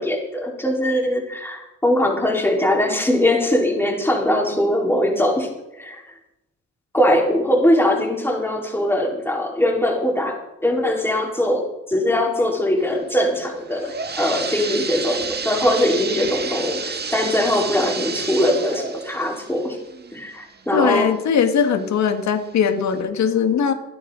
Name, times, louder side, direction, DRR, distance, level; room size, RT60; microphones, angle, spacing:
voice 1, 0.0-5.5 5.8-6.0 6.9-19.8 20.1-21.1, left 1 dB, 10° left, -1 dB, 4.3 m, -21 dB
sound 1, 13.5-21.1 21.6-21.7 22.5-22.6 23.0-23.1, right 5 dB, 35° right, 1.6 m, -30 dB
voice 2, 20.7-23.7, left 7 dB, 65° left, 7 dB, 1.9 m, -20 dB
28.0 x 10.0 x 4.0 m, 0.90 s
cardioid pair, 90°, 30 cm